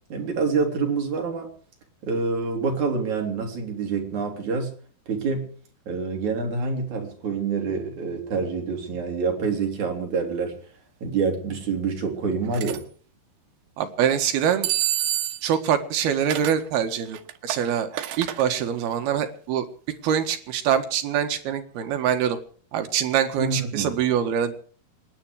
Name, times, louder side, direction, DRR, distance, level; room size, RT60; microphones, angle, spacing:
voice 1, 0.1-1.5 2.0-4.7 5.1-5.5 5.9-10.6 11.0-12.8 23.4-23.9, right 4 dB, 50° right, 3 dB, 4.2 m, -26 dB
sound 1, 12.5-12.8 14.6-15.6 16.3-16.6 17.1-18.4, right 13 dB, 90° right, 3.3 m, -27 dB
voice 2, 13.8-14.7 15.4-17.2 17.4-17.9 18.2-19.7 20.0-22.4 22.7-24.5, right 9 dB, 75° right, 7 dB, 3.5 m, -24 dB
27.0 x 10.5 x 4.9 m, 0.44 s
omnidirectional pair, 4.6 m